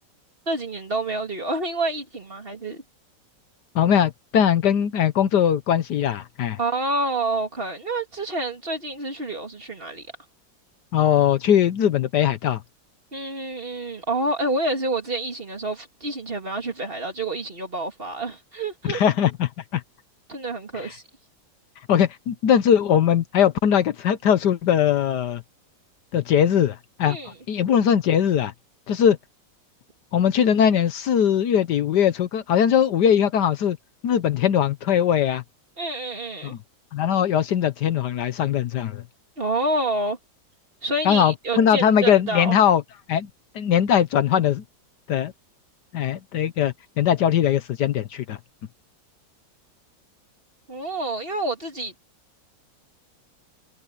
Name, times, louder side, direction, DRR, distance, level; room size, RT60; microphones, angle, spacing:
voice 1, 0.5-2.8 6.6-10.1 13.1-19.0 20.3-21.0 27.0-27.4 35.8-36.5 39.4-40.2 40.8-42.5 50.7-51.9, right 2 dB, 30° right, 2.7 m, -28 dB
voice 2, 3.7-6.6 10.9-12.6 18.9-19.8 20.8-20.9 21.9-25.4 26.1-27.2 27.5-28.5 28.9-29.2 30.1-33.8 34.0-35.4 36.4-36.6 36.9-39.0 41.0-42.8 43.1-43.3 43.5-44.6 45.1-45.3 45.9-48.4, left 9 dB, 70° left, 1.4 m, -20 dB
omnidirectional pair, 2.0 m